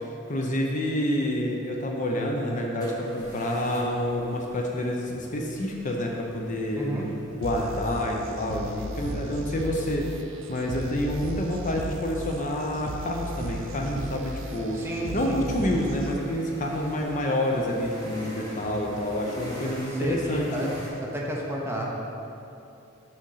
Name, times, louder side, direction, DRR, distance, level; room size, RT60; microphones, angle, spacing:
voice 1, 0.0-6.9 7.3-10.1 10.5-14.8 15.1-20.5, left 1 dB, 35° left, 0 dB, 0.7 m, -28 dB
sound 1, 2.8-20.9, equal, 20° left, 1.5 m, -45 dB
voice 2, 6.8-7.1 14.7-15.5 19.9-20.7 21.0-21.8, equal, 10° right, -3 dB, 0.9 m, -31 dB
sound 2, 7.4-16.4, right 1 dB, 65° right, 0.5 m, -36 dB
6.4 x 5.0 x 5.7 m, 2.8 s
head